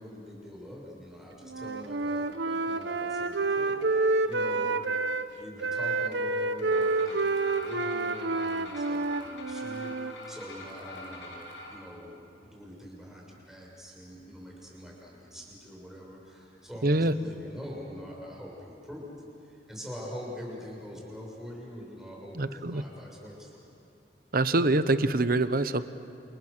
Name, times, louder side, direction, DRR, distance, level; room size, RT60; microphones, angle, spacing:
voice 1, 0.0-4.9 5.3-19.0 19.4-23.6, equal, 5° right, -3 dB, 6.8 m, -44 dB
Wind instrument woodwind instrument, 1.5-5.3 5.6-10.1, right 3 dB, 75° right, 1.2 m, -29 dB
sound 1, 6.6-11.7, left 1 dB, 90° left, 7.9 m, -45 dB
voice 2, 16.8-17.1 22.4-22.8 24.3-25.8, right 2 dB, 55° right, 12 dB, 1.0 m, -25 dB
29.5 x 29.0 x 6.8 m, 2.8 s
head